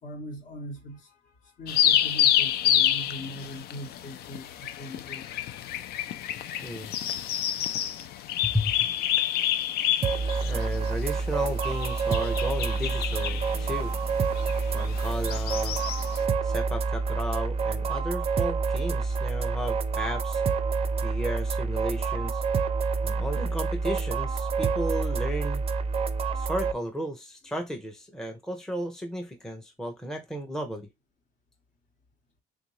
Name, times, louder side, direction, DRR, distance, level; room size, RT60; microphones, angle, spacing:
voice 1, 0.0-5.3, equal, 50° left, 1.2 m, -41 dB
sound 1, 1.7-16.2, left 11 dB, 70° left, 0.5 m, -28 dB
voice 2, 6.6-6.9 8.4-8.9 10.4-13.9 14.7-15.8 16.4-20.4 21.0-22.4 23.0-25.6 26.3-30.9, equal, 5° left, 0.7 m, -34 dB
sound 2, 10.0-26.7, right 4 dB, 35° right, 0.5 m, -28 dB
3.6 x 2.6 x 3.0 m
cardioid pair, 110°, 17 cm